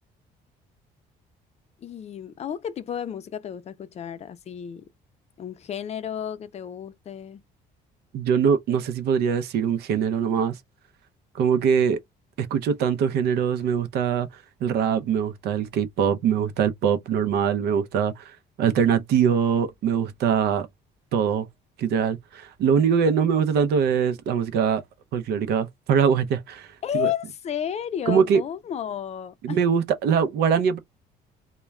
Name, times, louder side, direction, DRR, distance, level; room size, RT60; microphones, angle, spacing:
voice 1, 1.8-4.8 5.4-7.4 26.8-29.6, left 9 dB, 40° left, 0.4 m, -32 dB
voice 2, 8.1-10.6 11.3-12.0 12.4-14.3 14.6-20.7 21.1-21.5 21.8-24.8 25.1-26.7 26.9-27.1 28.1-28.4 29.4-30.8, right 7 dB, 75° right, 0.6 m, -22 dB
2.3 x 2.1 x 3.1 m
cardioid pair, 110°, 17 cm